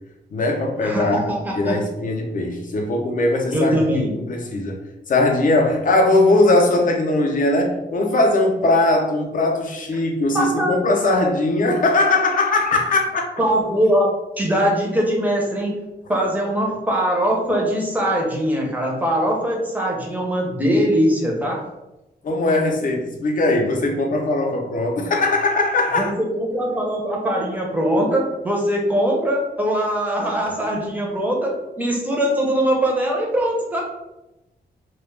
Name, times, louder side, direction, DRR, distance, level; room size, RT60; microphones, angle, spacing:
voice 1, 0.3-1.3 1.5-4.8 5.1-13.3 22.2-26.1, left 2 dB, 50° left, 1 dB, 0.5 m, -20 dB
voice 2, 0.8-1.8 3.5-4.1 10.3-10.8 13.4-15.7 16.1-21.6 26.0-33.8, equal, 10° right, -1 dB, 0.5 m, -21 dB
2.2 x 2.0 x 3.1 m, 0.95 s
wide cardioid pair, 150°, 18 cm